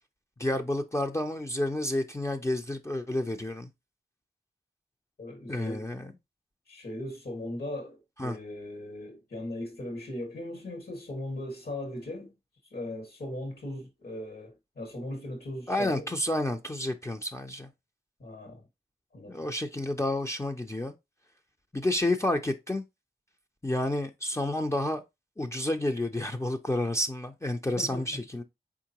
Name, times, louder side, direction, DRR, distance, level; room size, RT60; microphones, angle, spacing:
voice 1, 0.4-3.7 5.5-6.1 8.2-8.4 15.7-17.7 19.3-20.9 21.7-22.8 23.6-25.0 25.4-28.4, left 1 dB, 15° left, 0.5 m, -30 dB
voice 2, 5.2-5.9 6.7-12.3 12.7-16.1 18.2-18.7 19.1-19.5 27.8-28.2, left 1 dB, 70° left, 2.3 m, -38 dB
4.4 x 3.7 x 2.9 m
wide cardioid pair, 60°, 17 cm